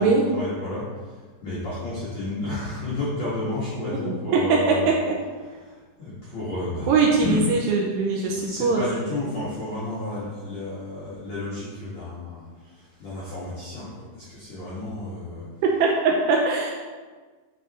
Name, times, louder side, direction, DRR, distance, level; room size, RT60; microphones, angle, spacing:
voice 1, 0.0-4.9 5.3-7.5 8.3-15.5, left 2 dB, 60° left, -10 dB, 1.8 m, -32 dB
voice 2, 4.0-4.6 4.9-5.1 6.9-8.8 15.8-16.7, right 4 dB, 80° right, -1 dB, 2.5 m, -21 dB
10.5 x 4.3 x 4.2 m, 1.4 s
omnidirectional pair, 5.4 m